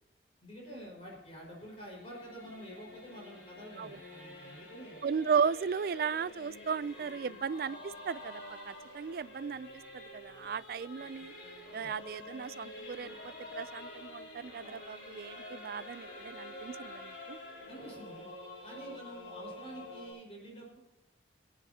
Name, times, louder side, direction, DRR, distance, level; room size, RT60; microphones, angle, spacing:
voice 1, 0.4-5.0 11.8-11.9 17.7-18.3 18.6-20.8, equal, 30° left, -2 dB, 5.0 m, -48 dB
Singing / Musical instrument, 0.7-20.1, left 1 dB, 75° left, 4.7 m, -48 dB
voice 2, 5.0-11.3 11.7-17.4, right 6 dB, 55° right, 19 dB, 0.3 m, -36 dB
22.5 x 9.4 x 2.8 m, 1.0 s
head